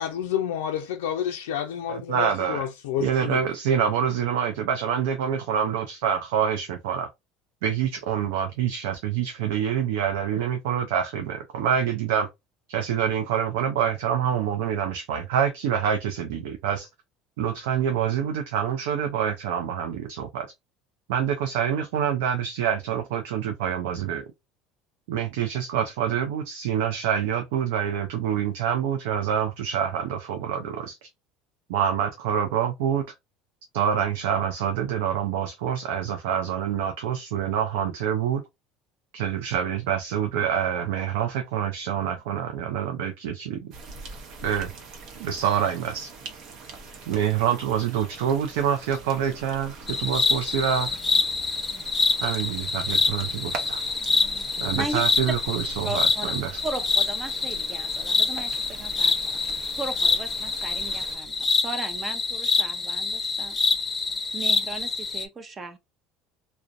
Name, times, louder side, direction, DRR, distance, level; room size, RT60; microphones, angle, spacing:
voice 1, 0.0-3.4, left 9 dB, 85° left, 0.3 m, -29 dB
voice 2, 1.9-2.7 3.0-7.1 7.6-12.3 12.7-16.9 17.4-20.5 21.1-24.2 25.1-31.1 31.7-33.0 33.7-38.4 39.1-43.6 44.4-44.7 45.2-46.1 47.1-51.0 52.2-53.8 54.6-56.6, right 8 dB, 80° right, 0.4 m, -26 dB
sound 1, 43.7-61.2, right 3 dB, 60° right, 0.8 m, -43 dB
sound 2, 49.9-65.3, left 4 dB, 25° left, 0.6 m, -26 dB
voice 3, 55.8-56.3 56.6-63.6 64.3-65.8, right 3 dB, 30° right, 0.6 m, -36 dB
2.5 x 2.1 x 2.4 m
hypercardioid pair, 85°, 0 cm